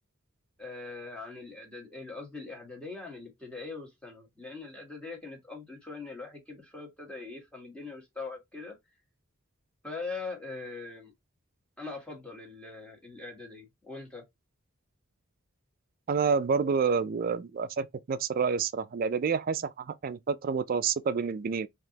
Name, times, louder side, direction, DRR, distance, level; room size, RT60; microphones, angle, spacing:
voice 1, 0.6-8.8 9.8-11.1 11.8-14.2, left 3 dB, 5° left, 1.4 m, -42 dB
voice 2, 16.1-21.7, right 5 dB, 45° right, 0.3 m, -28 dB
3.8 x 2.9 x 2.8 m
head